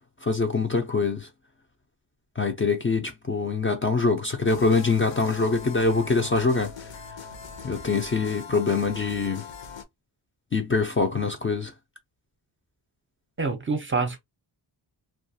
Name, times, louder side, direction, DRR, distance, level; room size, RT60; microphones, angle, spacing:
voice 1, 0.2-1.3 2.4-6.9 7.6-9.4 10.5-11.7, left 4 dB, 30° left, 0.4 m, -24 dB
sound 1, 4.5-9.8, left 5 dB, 75° left, 0.7 m, -41 dB
voice 2, 13.4-14.2, right 4 dB, 25° right, 0.6 m, -26 dB
2.3 x 2.3 x 2.6 m
wide cardioid pair, 115°, 45 cm